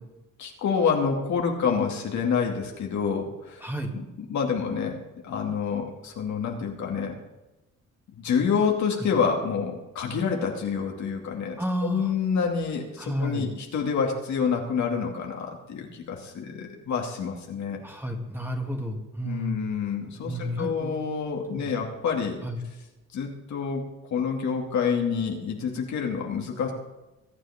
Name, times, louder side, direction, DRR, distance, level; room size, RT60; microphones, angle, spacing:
voice 1, 0.4-3.7 3.9-4.0 4.3-5.0 5.2-7.2 8.1-17.8 19.2-22.4 23.1-23.8 24.1-26.7, left 6 dB, 70° left, 1 dB, 2.5 m, -27 dB
voice 2, 11.6-12.1 13.0-13.5 17.8-19.5 20.2-21.0 21.5-21.7 22.4-22.6, equal, 5° right, 1 dB, 2.6 m, -31 dB
22.0 x 9.3 x 3.7 m, 1.0 s
cardioid pair, 90°, 30 cm